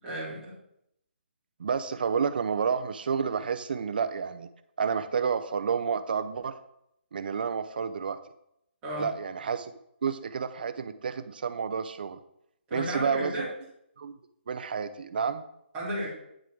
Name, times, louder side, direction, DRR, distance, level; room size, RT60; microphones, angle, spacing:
voice 1, 0.0-0.5 8.8-9.1 12.7-13.5 15.7-16.1, right 1 dB, 15° right, -7 dB, 2.1 m, -33 dB
voice 2, 1.6-4.5 4.8-6.6 7.1-8.2 9.0-9.7 10.0-12.2 12.7-13.5 14.0-14.2 14.5-15.4, right 6 dB, 55° right, 11 dB, 0.5 m, -30 dB
9.8 x 3.8 x 4.5 m, 0.77 s
hypercardioid pair, 170°, 6 cm